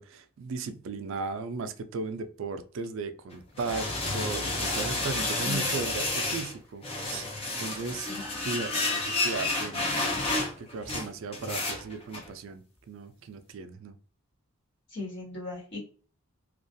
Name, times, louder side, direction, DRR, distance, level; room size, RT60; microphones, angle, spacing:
voice 1, 0.0-7.2 7.6-10.3 10.6-14.0, right 4 dB, 60° right, 0.3 m, -36 dB
sound 1, 3.3-6.6 6.8-12.3, left 2 dB, 25° left, 0.5 m, -30 dB
voice 2, 5.4-6.1 8.1-8.4 14.9-15.8, left 3 dB, 50° left, 1.3 m, -39 dB
2.3 x 2.2 x 2.6 m
head